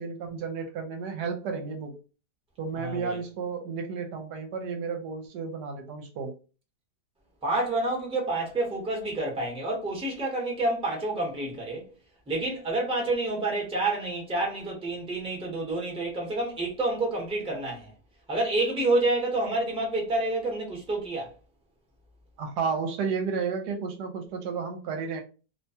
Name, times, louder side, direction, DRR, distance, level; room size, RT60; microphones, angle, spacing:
voice 1, 0.0-1.9 2.6-6.3 22.4-25.2, right 5 dB, 75° right, 1.1 m, -32 dB
voice 2, 2.7-3.2 7.4-11.9 12.3-17.9 18.3-21.3, right 2 dB, 5° right, 0.7 m, -28 dB
2.9 x 2.2 x 2.7 m
omnidirectional pair, 1.8 m